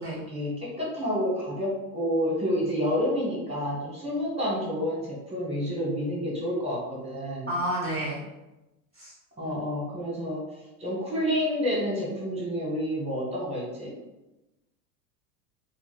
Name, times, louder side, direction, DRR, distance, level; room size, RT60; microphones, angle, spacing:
voice 1, 0.0-7.5 9.4-10.4 10.8-13.9, equal, 15° right, -4 dB, 1.1 m, -29 dB
voice 2, 7.5-8.2 9.0-9.1 9.4-9.5, right 1 dB, 15° left, -7 dB, 0.7 m, -30 dB
2.5 x 2.2 x 3.9 m, 1.0 s
supercardioid pair, 115°, 44 cm